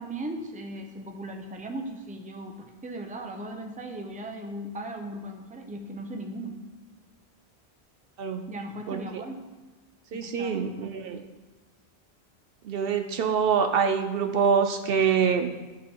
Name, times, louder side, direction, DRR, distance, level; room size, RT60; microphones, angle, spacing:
voice 1, 0.0-6.6 8.5-9.4 10.1-10.9, right 1 dB, 10° right, 3 dB, 0.6 m, -38 dB
voice 2, 10.1-11.2 12.6-15.5, right 6 dB, 65° right, 6 dB, 0.7 m, -25 dB
12.5 x 4.3 x 3.7 m, 1.2 s
omnidirectional pair, 1.1 m